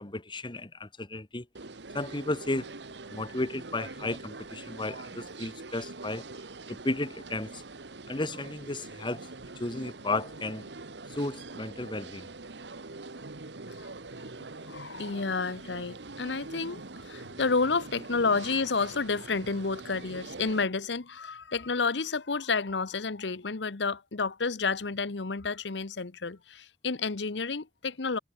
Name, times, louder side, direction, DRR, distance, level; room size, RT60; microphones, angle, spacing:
voice 1, 0.0-1.4 1.9-2.7 3.1-6.2 6.7-7.6 8.1-9.3 9.6-10.7 11.1-12.3, left 2 dB, 25° left, 1.6 m, -34 dB
sound 1, 1.5-20.6, right 3 dB, 75° right, 1.5 m, -44 dB
voice 2, 14.2-28.2, left 4 dB, 80° left, 1.0 m, -30 dB
head